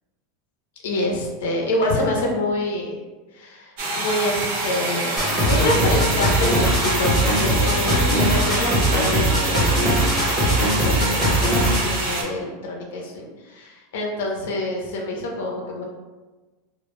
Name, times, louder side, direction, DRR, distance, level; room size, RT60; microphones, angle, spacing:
voice 1, 0.8-3.0 3.3-15.8, left 1 dB, 75° left, 0 dB, 0.5 m, -27 dB
sound 1, 3.8-12.2, right 2 dB, 60° right, 0.4 m, -26 dB
sound 2, 5.2-12.0, equal, ahead, 0.7 m, -21 dB
2.1 x 2.0 x 2.9 m, 1.2 s
supercardioid pair, 175°, 0 cm